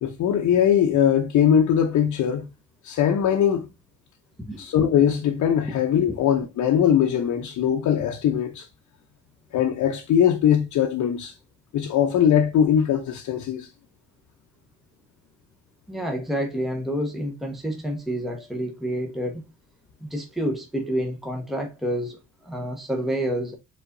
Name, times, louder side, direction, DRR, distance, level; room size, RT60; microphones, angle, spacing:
voice 1, 0.0-2.4 2.8-3.7 4.6-8.7 9.5-11.3 11.7-13.7, left 9 dB, 75° left, 0.8 m, -21 dB
voice 2, 15.9-19.4 20.0-23.6, equal, ahead, 1.0 m, -28 dB
4.6 x 4.0 x 2.6 m
cardioid pair, 90°, 30 cm